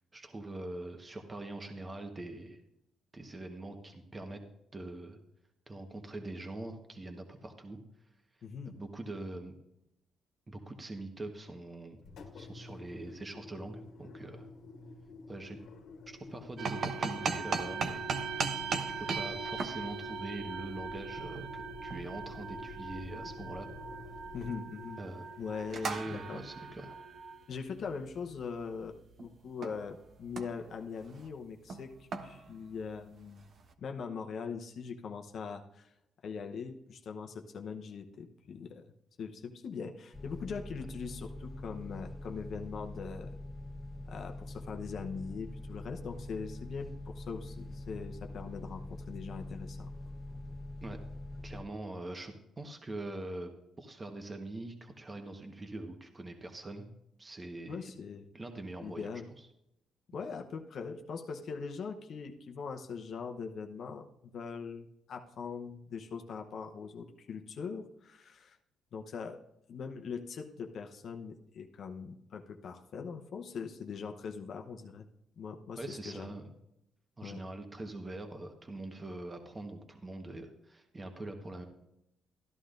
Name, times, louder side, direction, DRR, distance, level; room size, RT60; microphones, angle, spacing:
voice 1, 0.1-2.6 3.1-4.4 4.7-5.2 5.7-7.8 8.8-9.5 10.5-12.0 12.3-14.5 15.3-15.6 16.1-18.5 19.0-23.7 25.0-25.3 25.8-27.0 50.8-51.0 51.4-53.5 53.8-56.9 57.2-57.9 58.3-59.1 59.4-59.5 75.8-76.5 77.2-81.7, right 2 dB, 25° right, 5 dB, 1.2 m, -43 dB
voice 2, 8.4-8.8 24.3-25.0 25.4-26.4 27.5-33.5 33.8-35.9 36.2-38.9 39.2-43.4 44.1-49.9 57.7-58.3 58.8-59.3 60.1-68.6 68.9-69.4 69.7-75.1 75.4-76.3 77.2-77.4, left 5 dB, 60° left, 4 dB, 0.9 m, -41 dB
Engine, 12.0-26.0, left 3 dB, 75° left, 1.4 m, -50 dB
sound 1, 16.6-29.3 29.6-30.0 30.2-30.7 31.0-31.3 31.7-33.2, right 5 dB, 55° right, 0.8 m, -38 dB
sound 2, 40.1-51.6, left 1 dB, 10° left, 1.1 m, -44 dB
13.5 x 11.5 x 2.6 m, 0.82 s
cardioid pair, 90°, 0 cm